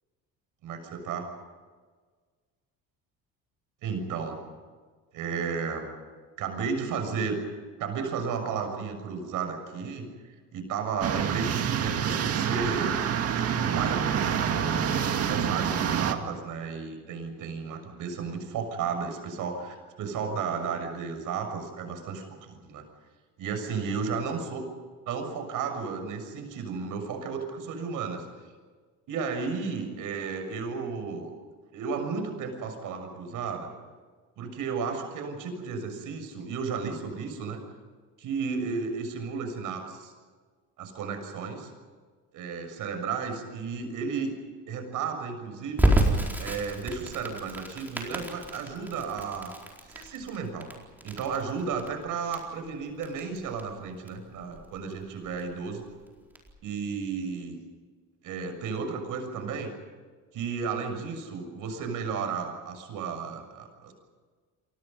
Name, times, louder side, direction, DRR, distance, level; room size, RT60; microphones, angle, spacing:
voice 1, 0.6-1.3 3.8-4.4 5.1-5.9 6.4-7.4 7.8-10.1 10.5-13.0 13.4-14.7 15.2-22.8 23.4-24.6 25.1-28.2 29.1-31.3 31.7-33.7 34.4-37.6 38.2-40.1 40.8-41.7 42.3-44.4 44.7-46.0 46.4-49.5 49.9-50.7 51.0-55.8 56.6-57.6 58.2-59.7 60.3-63.9, right 5 dB, 65° right, 6 dB, 6.6 m, -33 dB
sound 1, 11.0-16.1, right 8 dB, 45° right, 2.1 m, -27 dB
Crackle, 45.8-56.5, right 1 dB, 5° right, 4.4 m, -31 dB
29.5 x 24.0 x 5.5 m, 1.5 s
cardioid pair, 155°, 34 cm